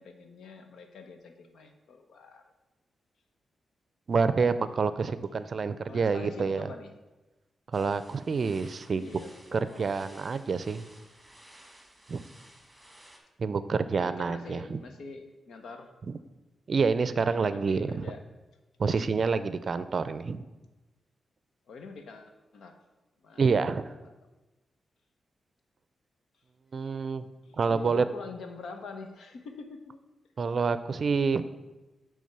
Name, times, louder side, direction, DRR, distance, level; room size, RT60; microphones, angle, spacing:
voice 1, 0.0-2.5 5.9-6.9 8.9-10.0 14.0-15.9 17.3-18.2 18.9-19.0 21.7-22.8 23.2-24.1 26.7-26.9 27.4-30.0, left 4 dB, 85° left, 6 dB, 0.9 m, -45 dB
voice 2, 4.1-6.7 7.7-9.0 9.5-10.8 12.1-12.2 13.4-14.8 16.7-18.0 18.8-20.4 23.4-23.8 26.7-27.3 27.6-28.0 30.4-31.4, right 5 dB, 50° right, 13 dB, 0.4 m, -27 dB
sound 1, 7.7-13.2, right 1 dB, 5° right, 1.6 m, -55 dB
8.7 x 3.5 x 6.6 m, 1.1 s
cardioid pair, 85°, 0 cm